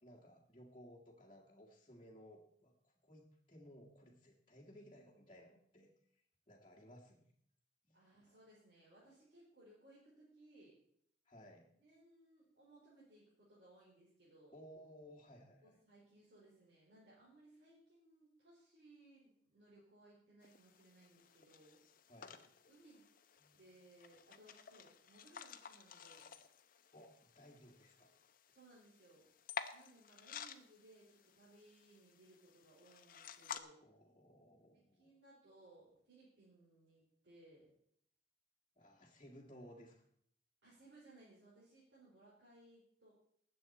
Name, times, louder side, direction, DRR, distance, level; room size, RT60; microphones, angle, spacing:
voice 1, 0.0-5.9 6.5-7.3 7.8-8.4 11.3-11.7 14.5-15.8 22.1-22.4 23.4-23.6 26.9-28.1 33.8-35.1 38.8-40.1, equal, 30° left, -4 dB, 1.9 m, -59 dB
voice 2, 7.9-10.8 11.8-14.6 15.6-21.8 22.7-23.0 23.5-26.3 28.5-29.3 29.7-33.8 34.7-37.7 40.6-43.1, right 2 dB, 65° right, -8 dB, 4.8 m, -64 dB
sound 1, 20.4-33.6, left 7 dB, 50° left, 0.8 m, -53 dB
19.5 x 7.9 x 4.3 m, 0.66 s
head